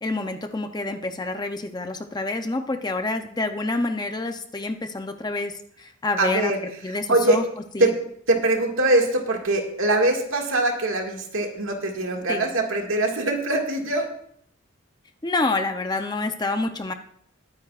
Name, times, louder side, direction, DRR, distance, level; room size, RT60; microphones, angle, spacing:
voice 1, 0.0-7.4 7.7-7.9 12.3-12.4 15.2-16.9, left 2 dB, 20° left, 7 dB, 0.5 m, -28 dB
voice 2, 6.2-6.6 7.1-7.4 7.8-7.9 8.3-14.0, right 2 dB, 70° right, 2 dB, 2.0 m, -22 dB
21.0 x 9.6 x 2.4 m, 0.66 s
head